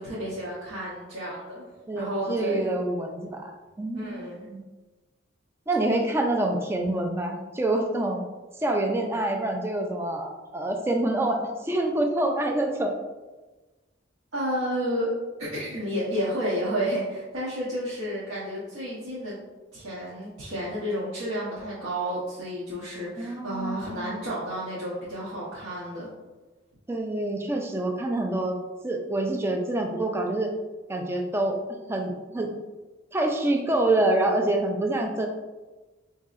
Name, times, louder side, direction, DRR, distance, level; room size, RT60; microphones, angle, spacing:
voice 1, 0.0-1.7 1.9-2.7 3.9-4.4 14.3-15.1 15.4-19.4 19.7-26.1, equal, 70° right, -9 dB, 0.8 m, -31 dB
voice 2, 1.9-3.5 3.8-4.6 5.7-8.2 8.6-12.9 23.2-24.1 26.9-28.6 28.8-30.5 30.9-32.5 33.1-35.3, right 1 dB, 10° right, 2 dB, 0.3 m, -26 dB
3.9 x 2.7 x 2.4 m, 1.2 s
head